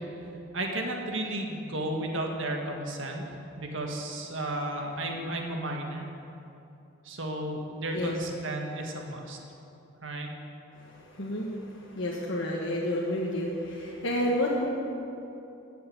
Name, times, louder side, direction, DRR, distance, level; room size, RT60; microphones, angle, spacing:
voice 1, 0.5-3.2 3.6-6.1 7.0-9.4 10.0-10.3, right 1 dB, 65° right, 2 dB, 1.8 m, -33 dB
voice 2, 10.7-14.7, left 1 dB, 60° left, -4 dB, 1.4 m, -30 dB
15.0 x 6.8 x 8.9 m, 2.8 s
head